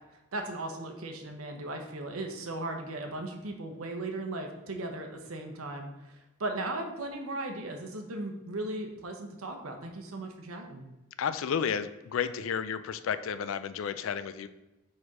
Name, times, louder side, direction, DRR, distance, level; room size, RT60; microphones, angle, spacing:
voice 1, 0.3-10.9, right 2 dB, 90° right, 4 dB, 0.9 m, -37 dB
voice 2, 11.2-14.5, left 7 dB, 70° left, 13 dB, 0.3 m, -32 dB
4.6 x 4.3 x 4.8 m, 1.0 s
head